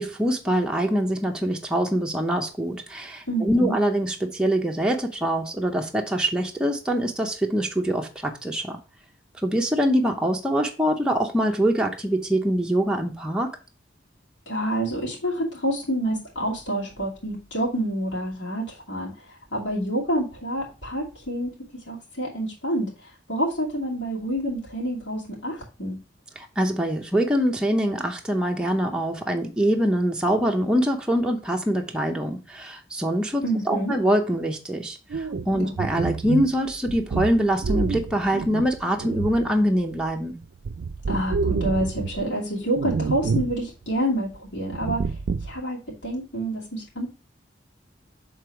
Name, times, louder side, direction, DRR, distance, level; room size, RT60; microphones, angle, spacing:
voice 1, 0.0-8.8 9.4-13.5 26.4-40.4, equal, 5° right, 0.6 m, -24 dB
voice 2, 3.3-3.8 14.5-19.1 19.5-21.5 21.9-22.9 23.3-26.0 33.4-33.9 35.5-35.8 41.1-45.0 45.4-47.1, right 1 dB, 80° left, 2.5 m, -27 dB
sound 1, 35.1-40.1 40.4-42.3 42.7-43.6 43.9-44.0 44.7-45.6, right 4 dB, 70° right, 0.4 m, -28 dB
6.6 x 3.8 x 4.5 m
head